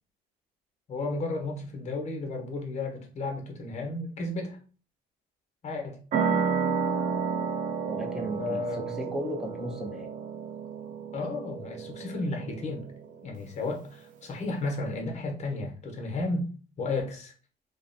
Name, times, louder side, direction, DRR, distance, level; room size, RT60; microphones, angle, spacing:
voice 1, 0.9-4.6 5.6-6.0 8.3-9.1 11.1-12.9 13.2-16.5 16.8-17.3, left 2 dB, 40° left, 0.8 m, -33 dB
sound 1, 6.1-13.3, right 6 dB, 50° right, 0.5 m, -31 dB
voice 2, 7.8-10.1, equal, 5° right, 0.6 m, -35 dB
2.5 x 2.1 x 2.5 m
cardioid pair, 110°, 17 cm